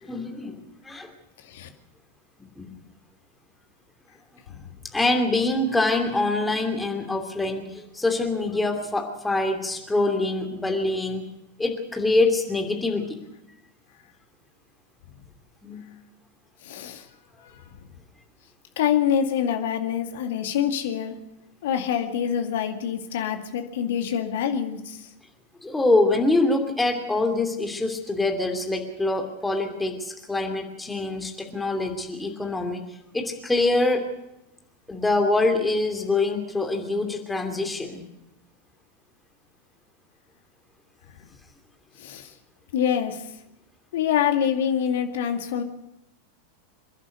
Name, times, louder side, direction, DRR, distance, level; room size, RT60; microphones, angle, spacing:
voice 1, 0.0-1.1 2.4-2.8 4.9-11.2 11.6-13.2 15.6-15.8 25.6-32.8 33.1-34.1 34.9-38.1, left 2 dB, 5° left, 4 dB, 2.8 m, -25 dB
voice 2, 16.6-17.1 17.4-17.7 18.8-21.2 21.6-25.1 42.0-42.3 42.7-43.3 43.9-45.6, left 9 dB, 55° left, 6 dB, 2.2 m, -26 dB
28.5 x 11.5 x 8.2 m, 0.87 s
figure-of-eight pair, 90°, 0 cm